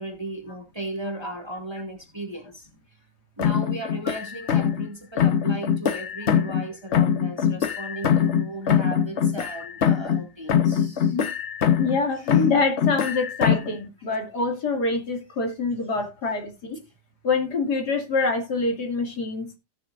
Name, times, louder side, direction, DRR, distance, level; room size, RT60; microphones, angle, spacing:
voice 1, 0.0-2.7 3.4-11.2 12.2-12.4, right 1 dB, 15° right, 2.2 m, -36 dB
sound 1, 3.4-4.9 5.2-6.7 6.9-10.2 10.5-12.0 12.3-13.8, left 8 dB, 50° left, 1.0 m, -22 dB
voice 2, 11.8-16.8 17.2-19.5, left 3 dB, 70° left, 3.0 m, -25 dB
17.5 x 6.8 x 2.5 m
omnidirectional pair, 1.9 m